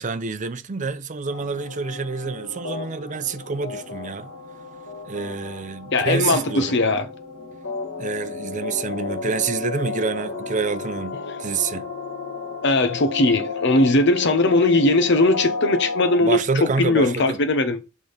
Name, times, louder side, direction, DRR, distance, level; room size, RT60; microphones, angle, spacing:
voice 1, 0.0-4.3 5.1-6.8 8.0-11.9 16.2-17.4, right 4 dB, 40° right, 0.6 m, -27 dB
sound 1, 1.3-16.2, left 4 dB, 75° left, 1.7 m, -33 dB
voice 2, 5.9-7.0 12.6-17.8, left 2 dB, 60° left, 1.0 m, -19 dB
6.1 x 3.6 x 5.1 m
head